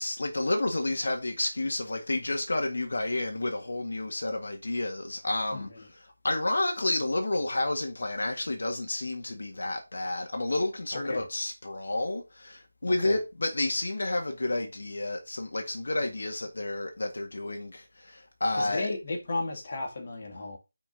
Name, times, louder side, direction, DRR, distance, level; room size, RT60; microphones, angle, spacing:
voice 1, 0.0-18.9, left 2 dB, 65° left, 1.7 m, -30 dB
voice 2, 10.9-11.3 12.9-13.2 18.6-20.6, left 2 dB, 40° left, 2.3 m, -34 dB
6.3 x 5.1 x 5.3 m
figure-of-eight pair, 170°, 0 cm